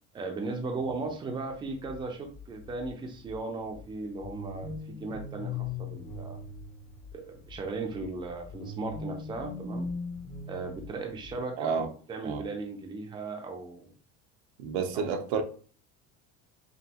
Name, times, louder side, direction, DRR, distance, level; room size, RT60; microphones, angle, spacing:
voice 1, 0.1-4.7 5.0-6.4 7.1-9.9 10.5-13.9 14.9-15.2, right 3 dB, 15° right, 3 dB, 0.5 m, -37 dB
sound 1, 1.1-11.4, left 6 dB, 60° left, 0.9 m, -51 dB
sound 2, 4.2-7.4 8.5-11.4, left 3 dB, 20° left, 0.8 m, -39 dB
voice 2, 11.6-11.9 12.2-12.4 14.6-15.4, right 6 dB, 80° right, 7 dB, 0.8 m, -30 dB
5.3 x 2.6 x 2.9 m, 0.41 s
cardioid pair, 160°, 34 cm